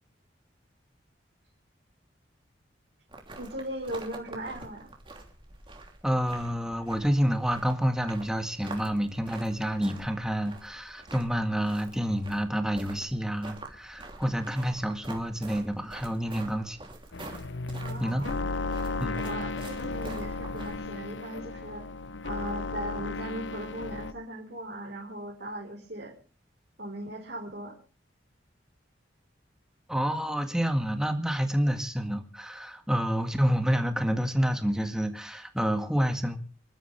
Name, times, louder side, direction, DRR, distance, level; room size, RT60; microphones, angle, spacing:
sound 1, 3.1-20.8, right 2 dB, 25° right, 3.1 m, -47 dB
voice 1, 3.4-4.9 17.8-18.3 19.1-21.9 22.2-26.1 26.8-27.8, right 1 dB, 60° right, -3 dB, 4.4 m, -38 dB
voice 2, 6.0-16.9 18.0-18.2 19.0-19.2 29.9-36.4, equal, 5° right, 6 dB, 1.9 m, -28 dB
sound 2, 17.1-24.1, left 3 dB, 75° left, 0.8 m, -34 dB
26.5 x 13.0 x 3.4 m, 0.38 s
head